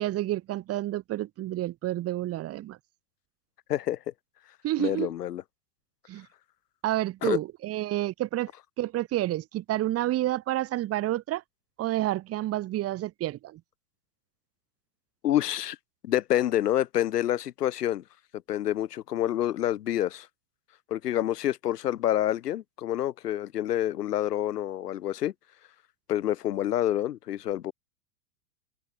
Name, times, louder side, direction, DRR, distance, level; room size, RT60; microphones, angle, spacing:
voice 1, 0.0-2.8 4.6-5.1 6.1-6.3 6.8-8.5 8.8-11.4 11.8-13.6, right 15 dB, 30° right, 2.0 m, -29 dB
voice 2, 4.8-5.4 7.2-7.4 15.2-15.8 16.0-18.0 18.5-20.3 20.9-25.3 26.1-27.7, left 12 dB, 75° left, 1.2 m, -27 dB
open air
hypercardioid pair, 105°, 48 cm